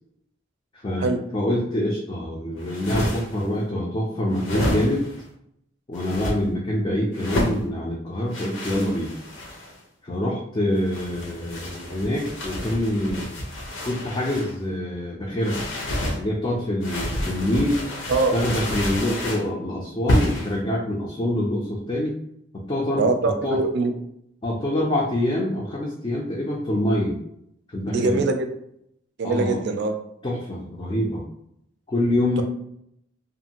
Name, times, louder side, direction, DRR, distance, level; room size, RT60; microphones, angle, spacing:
voice 1, 0.7-5.1 5.9-9.2 10.0-13.3 13.8-15.6 16.2-17.9 18.3-22.1 22.5-23.1 23.4-23.6 24.4-27.2 27.7-28.2 29.2-29.6 30.2-31.2 31.9-32.4, left 1 dB, 25° left, -3 dB, 0.4 m, -25 dB
sound 1, 2.6-3.4 4.3-5.2 5.9-6.4 7.1-7.6 8.3-9.8 10.7-14.5 15.4-16.2 16.8-19.5 20.1-20.5, left 1 dB, 65° left, 0.7 m, -29 dB
voice 2, 23.0-23.9 27.9-28.5 29.2-30.0, right 3 dB, 55° right, 6 dB, 0.4 m, -22 dB
2.6 x 2.5 x 2.8 m, 0.73 s
head